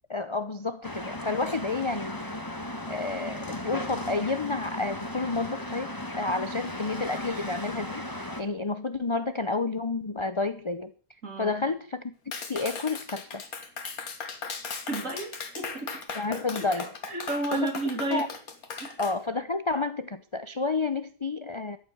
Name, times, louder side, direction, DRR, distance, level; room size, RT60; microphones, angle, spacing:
voice 1, 0.1-2.2 2.9-5.9 6.2-10.9 11.4-12.0 12.5-13.4 16.1-16.9 17.5-17.7 18.1-18.3 19.0-21.8, left 3 dB, 35° left, 11 dB, 0.5 m, -30 dB
sound 1, 0.8-8.4, left 1 dB, 15° left, 1.6 m, -36 dB
voice 2, 11.2-11.6 14.2-14.3 14.9-16.0 16.7-18.3 18.8-19.0, right 2 dB, 60° right, 4 dB, 3.4 m, -32 dB
Clapping, 12.3-19.1, left 5 dB, 80° left, 2.1 m, -37 dB
13.5 x 8.4 x 7.9 m, 0.42 s
omnidirectional pair, 1.5 m